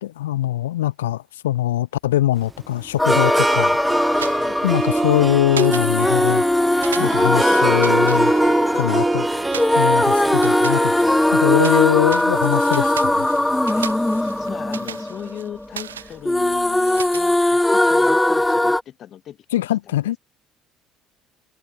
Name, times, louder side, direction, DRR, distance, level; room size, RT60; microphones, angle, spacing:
voice 1, 0.0-3.8 4.6-6.4 7.0-9.3 9.8-10.9 11.3-13.3 19.5-20.2, left 14 dB, 75° left, 0.4 m, -22 dB
Harp, 2.4-14.5, right 3 dB, 15° right, 0.4 m, -25 dB
sound 1, 3.0-15.9 16.2-18.8, left 1 dB, 10° left, 0.9 m, -20 dB
sound 2, 4.0-5.2 5.5-6.5 6.8-8.9 9.5-11.8 12.1-17.9, right 8 dB, 80° right, 2.5 m, -37 dB
voice 2, 13.6-19.4 19.8-19.9, left 10 dB, 50° left, 6.8 m, -38 dB
figure-of-eight pair, 55°, 0 cm